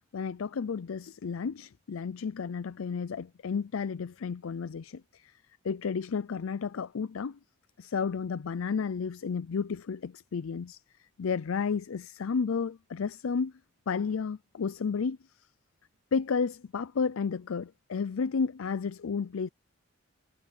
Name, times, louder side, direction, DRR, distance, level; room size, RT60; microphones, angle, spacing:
voice 1, 0.1-5.3 5.6-7.4 7.8-10.8 11.2-13.5 13.9-15.2 16.1-19.5, left 5 dB, 80° left, 0.5 m, -32 dB
head